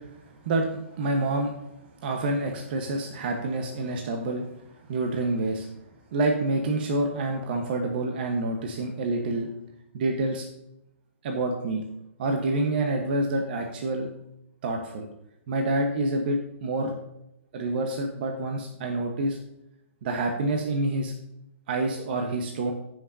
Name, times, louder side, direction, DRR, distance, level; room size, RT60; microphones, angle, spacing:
voice 1, 0.0-1.6 2.0-4.5 4.9-5.7 6.1-9.5 9.9-10.4 11.2-11.8 12.2-14.1 14.6-15.1 15.5-16.9 17.5-19.4 20.0-21.1 21.7-22.7, right 2 dB, 45° right, 2 dB, 1.3 m, -27 dB
15.5 x 6.2 x 2.8 m, 0.83 s
hypercardioid pair, 150°, 7 cm